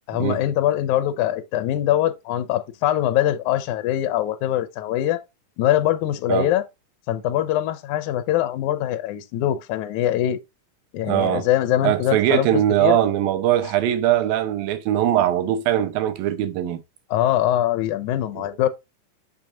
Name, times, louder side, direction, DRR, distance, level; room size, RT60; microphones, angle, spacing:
voice 1, 0.1-5.2 5.6-6.6 7.1-10.4 10.9-13.0 17.1-18.7, left 12 dB, 75° left, 2.0 m, -23 dB
voice 2, 11.1-11.5 11.8-16.8 18.4-18.5, right 12 dB, 90° right, 2.7 m, -21 dB
6.7 x 6.1 x 2.5 m
omnidirectional pair, 4.0 m